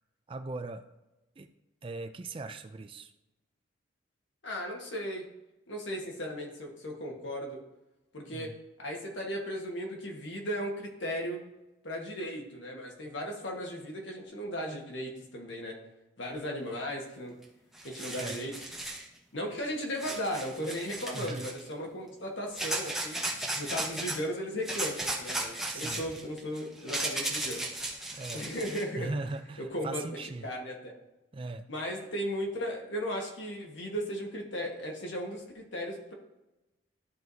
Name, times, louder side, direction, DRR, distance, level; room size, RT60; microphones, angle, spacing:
voice 1, 0.3-0.8 1.4-1.5 1.8-3.1 8.3-8.5 18.2-18.4 21.1-21.4 25.7-26.0 28.1-28.4 29.0-30.5 31.3-31.6, right 3 dB, 25° right, 9 dB, 0.4 m, -39 dB
voice 2, 4.4-5.3 5.7-7.6 8.1-11.4 11.8-15.8 16.2-17.3 17.8-18.5 19.3-23.2 23.5-27.6 28.3-29.1 29.6-30.9 31.7-36.1, equal, 75° left, 1 dB, 1.5 m, -36 dB
sound 1, 17.4-17.5 17.7-19.0 20.0-21.7 22.5-24.2 24.6-28.8, right 1 dB, ahead, 0.9 m, -35 dB
12.5 x 4.6 x 2.7 m, 0.97 s
head